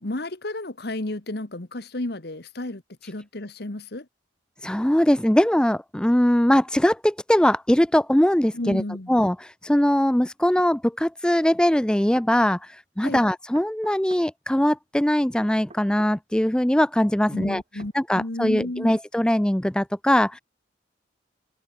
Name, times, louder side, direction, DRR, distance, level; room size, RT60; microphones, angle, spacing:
voice 1, 0.0-4.1 8.5-9.1 13.0-13.2 17.3-19.0, left 1 dB, 55° left, 1.5 m, -32 dB
voice 2, 4.6-8.8 9.1-17.6 17.9-20.4, left 1 dB, 5° left, 0.4 m, -21 dB
sound 1, 10.6-10.7 11.9-12.3 13.5-14.3 15.4-16.2 17.5-18.0 18.9-19.1, right 2 dB, 30° right, 3.4 m, -47 dB
head